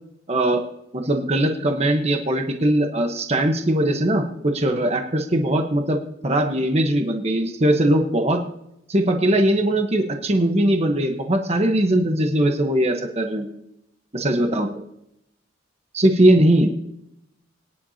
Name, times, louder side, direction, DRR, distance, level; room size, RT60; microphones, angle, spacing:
voice 1, 0.3-0.6 0.9-6.0 6.2-8.4 8.9-13.5 14.1-14.7 15.9-16.7, right 1 dB, 35° right, 4 dB, 1.1 m, -20 dB
23.0 x 10.5 x 2.8 m, 0.81 s
head